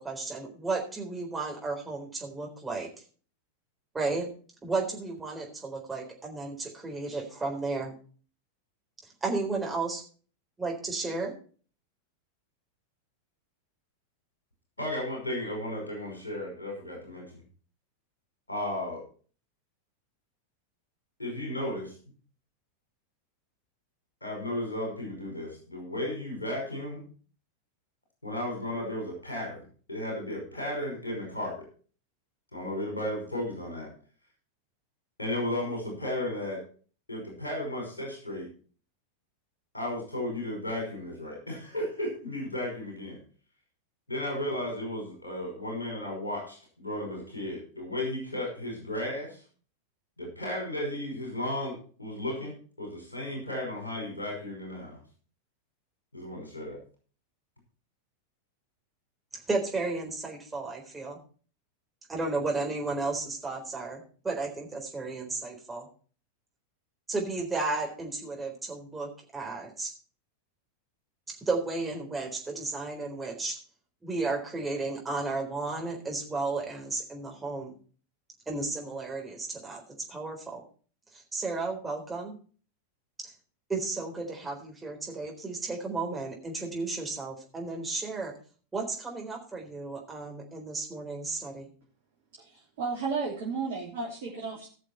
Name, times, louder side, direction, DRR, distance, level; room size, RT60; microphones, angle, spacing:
voice 1, 0.0-2.9 3.9-4.3 4.6-7.9 9.2-10.0 10.6-11.3 59.5-61.2 62.1-65.9 67.1-69.9 71.3-73.6 74.0-77.7 78.5-79.8 80.1-80.6 81.3-82.3 83.2-83.3 83.7-88.3 88.7-91.7, right 3 dB, 10° right, 0 dB, 3.9 m, -33 dB
voice 2, 14.8-17.4 18.5-19.0 21.2-21.9 24.2-27.0 28.2-29.6 29.9-31.7 32.5-33.9 35.2-36.6 37.1-38.5 39.7-43.2 44.1-49.4 50.2-52.5 52.8-55.0 56.1-56.8, left 1 dB, 80° left, -1 dB, 5.4 m, -34 dB
voice 3, 92.4-94.7, right 4 dB, 55° right, -3 dB, 3.1 m, -33 dB
17.0 x 6.6 x 4.5 m, 0.41 s
figure-of-eight pair, 90°, 0 cm